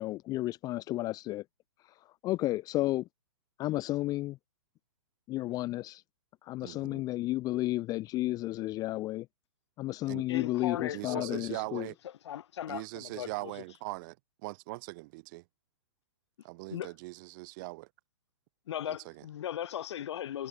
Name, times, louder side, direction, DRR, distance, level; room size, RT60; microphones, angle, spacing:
voice 1, 0.0-1.4 2.2-3.1 3.6-4.4 5.3-6.0 6.4-9.3 9.8-11.9, left 17 dB, 25° left, 0.5 m, -32 dB
voice 2, 6.6-7.1 10.1-10.2 10.9-12.0 12.7-14.2 14.4-15.4 16.4-17.9 18.8-19.3, right 24 dB, 40° right, 1.4 m, -41 dB
voice 3, 10.3-11.6 12.2-13.5 16.7-16.9 18.7-20.5, left 11 dB, 60° left, 0.8 m, -38 dB
hypercardioid pair, 120°, 16 cm